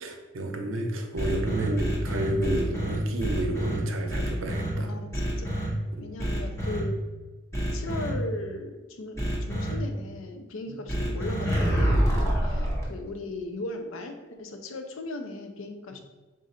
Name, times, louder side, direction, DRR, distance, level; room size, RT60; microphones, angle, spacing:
voice 1, 0.0-4.9 5.9-6.0 10.7-10.8 12.5-12.8, right 1 dB, 80° right, 4 dB, 0.6 m, -31 dB
sound 1, 1.2-3.8 4.1-4.7 5.1-5.7 6.2-6.8 7.5-8.1 9.2-9.7 10.9-12.8, equal, 15° left, 0.7 m, -27 dB
voice 2, 4.8-5.5 6.0-7.0 7.7-16.0, left 2 dB, 85° left, 6 dB, 0.5 m, -37 dB
3.8 x 2.4 x 4.2 m, 1.2 s
head